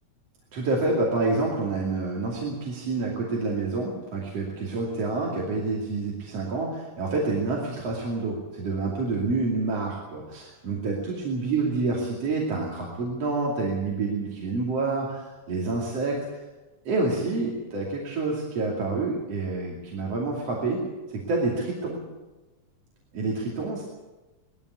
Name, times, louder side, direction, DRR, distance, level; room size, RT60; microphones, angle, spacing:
voice 1, 0.5-16.2 16.9-20.8 21.1-22.0 23.1-23.8, right 3 dB, 50° right, -3 dB, 3.6 m, -28 dB
20.0 x 14.5 x 9.5 m, 1.1 s
omnidirectional pair, 3.6 m